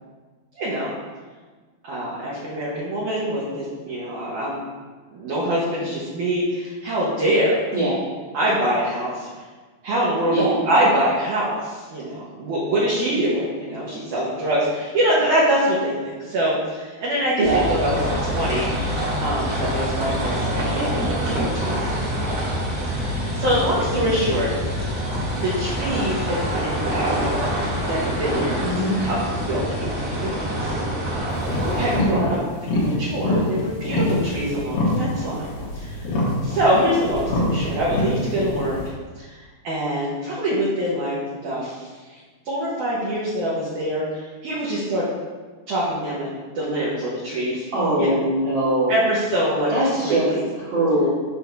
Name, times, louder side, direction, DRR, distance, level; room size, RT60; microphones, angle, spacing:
voice 1, 0.6-0.9 1.8-4.6 5.1-7.6 8.3-9.3 9.8-18.7 19.2-22.4 22.8-24.5 25.4-27.6 27.9-30.8 31.7-35.5 35.7-36.1 36.4-38.8 39.2-39.4 39.6-42.2 42.5-45.1 45.7-47.7 48.0-48.1 48.9-50.4, right 1 dB, 65° right, -7 dB, 2.1 m, -24 dB
voice 2, 10.3-10.6 17.4-17.6 28.6-29.0 32.1-32.3 47.7-49.0 49.7-50.3 50.6-51.1, right 1 dB, 90° right, -11 dB, 1.0 m, -21 dB
sound 1, 17.4-32.0, equal, 50° right, 2.2 m, -25 dB
sound 2, 31.3-38.9, left 1 dB, 70° left, 2.8 m, -25 dB
7.2 x 2.7 x 5.8 m, 1.4 s
omnidirectional pair, 4.4 m